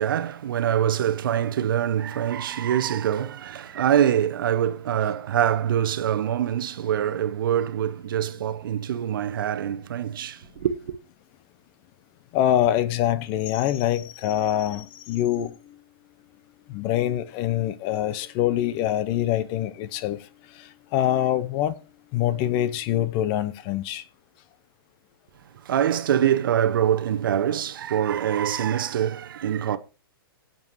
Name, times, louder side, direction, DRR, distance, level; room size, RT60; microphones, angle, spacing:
voice 1, 0.0-11.0 25.6-29.8, right 10 dB, 60° right, 0.9 m, -24 dB
voice 2, 12.3-15.7 16.7-21.8 22.1-24.0, left 12 dB, 35° left, 0.7 m, -25 dB
22.0 x 7.7 x 3.0 m
hypercardioid pair, 120°, 13 cm